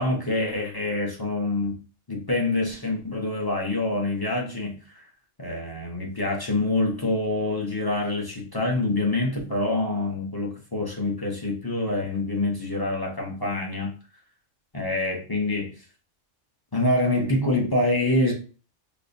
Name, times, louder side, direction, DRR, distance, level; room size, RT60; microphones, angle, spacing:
voice 1, 0.0-1.8 2.1-5.0 5.4-13.9 14.7-15.8 16.7-18.3, left 2 dB, 25° left, -1 dB, 0.6 m, -26 dB
4.9 x 2.1 x 2.6 m, 0.36 s
omnidirectional pair, 1.3 m